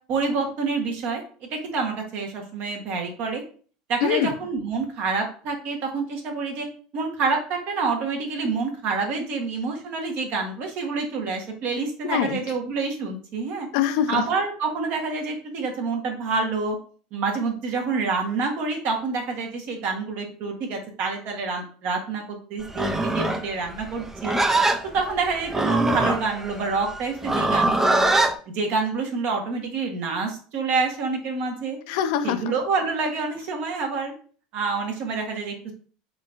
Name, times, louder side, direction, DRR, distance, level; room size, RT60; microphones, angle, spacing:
voice 1, 0.1-3.4 3.9-6.7 6.9-13.7 14.1-16.8 17.1-24.4 24.9-28.1 28.5-31.8 32.2-34.1 34.5-35.7, right 4 dB, 55° right, 2 dB, 1.2 m, -27 dB
voice 2, 4.0-4.3 12.1-12.4 13.7-14.2 31.9-32.5, left 10 dB, 70° left, 9 dB, 0.5 m, -23 dB
Livestock farm animals working animals, 22.7-28.4, right 2 dB, 10° right, 0.4 m, -23 dB
3.7 x 3.5 x 2.5 m, 0.43 s
supercardioid pair, 110°, 4 cm